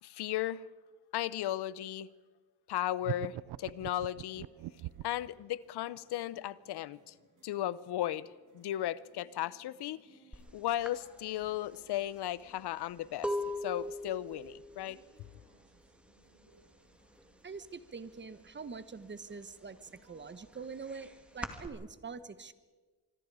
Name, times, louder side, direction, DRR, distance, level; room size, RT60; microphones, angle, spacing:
voice 1, 0.0-0.7 1.1-2.1 2.7-4.5 5.0-7.1 7.4-10.0 10.5-13.3 13.6-15.0, left 13 dB, 80° left, 0.8 m, -35 dB
sound 1, 3.0-5.3, right 15 dB, 80° right, 0.7 m, -40 dB
sound 2, 4.2-21.8, right 2 dB, 50° right, 4.9 m, -66 dB
sound 3, 10.3-10.5 10.8-16.5 16.8-17.3 17.6-18.7 19.1-21.7, left 1 dB, 5° right, 2.2 m, -41 dB
voice 2, 17.4-22.5, right 5 dB, 30° right, 1.3 m, -45 dB
25.5 x 24.0 x 4.9 m
cardioid pair, 100°, 39 cm